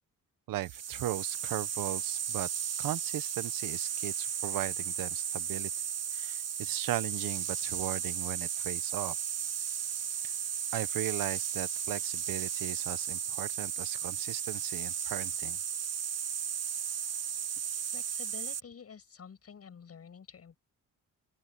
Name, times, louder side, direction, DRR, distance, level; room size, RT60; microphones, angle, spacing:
voice 1, 0.5-2.5 2.8-5.7 6.1-9.2 10.7-15.6, right 14 dB, 85° right, 1.0 m, -37 dB
sound 1, 0.6-18.6, right 8 dB, 50° right, 1.6 m, -35 dB
voice 2, 17.9-20.6, left 6 dB, 45° left, 7.3 m, -49 dB
open air
cardioid pair, 110°, 33 cm